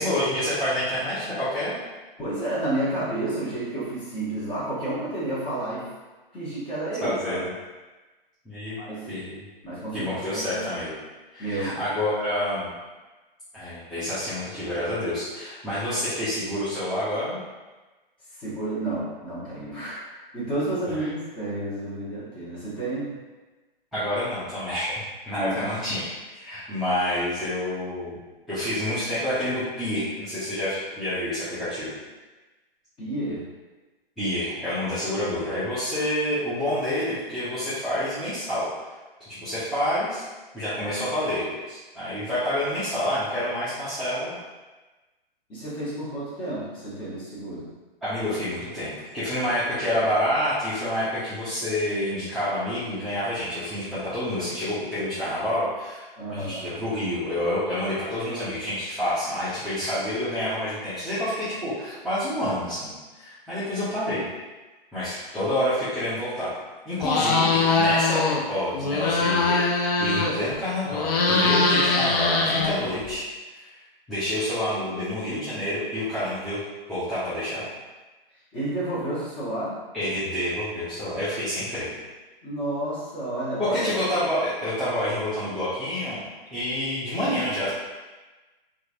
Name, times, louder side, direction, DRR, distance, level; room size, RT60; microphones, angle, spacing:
voice 1, 0.0-1.7 7.0-7.5 8.4-9.4 9.9-10.9 11.3-12.7 13.5-17.4 21.0-21.1 23.9-24.9 25.3-28.2 28.5-31.9 34.2-38.7 39.2-40.2 40.5-44.3 48.0-56.1 56.3-64.2 64.9-66.5 66.9-68.2 68.5-73.7 74.1-76.6 76.9-77.6 79.9-81.9 83.6-86.2 86.5-87.7, left 1 dB, ahead, -16 dB, 0.6 m, -28 dB
voice 2, 2.2-5.9 6.3-7.4 8.8-9.1 9.6-10.6 11.4-11.8 18.3-23.1 25.4-25.7 26.5-26.6 33.0-33.4 45.5-47.7 56.2-56.7 78.5-79.7 82.4-83.9, right 1 dB, 15° left, -8 dB, 1.0 m, -31 dB
sound 1, 67.0-68.4 68.7-70.5 70.9-73.1, left 3 dB, 45° left, 0.5 m, -22 dB
2.9 x 2.5 x 2.6 m, 1.2 s
hypercardioid pair, 130°, 29 cm